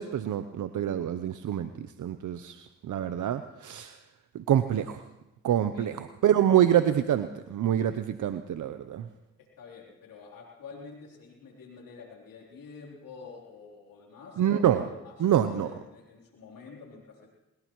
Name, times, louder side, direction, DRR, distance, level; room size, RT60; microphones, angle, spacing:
voice 1, 0.0-4.0 4.3-5.0 5.4-9.1 14.4-14.8 15.2-15.7, right 10 dB, 65° right, 10 dB, 0.7 m, -26 dB
voice 2, 9.6-17.3, left 5 dB, 80° left, -1 dB, 3.6 m, -47 dB
22.0 x 20.5 x 3.1 m, 0.99 s
supercardioid pair, 50°, 33 cm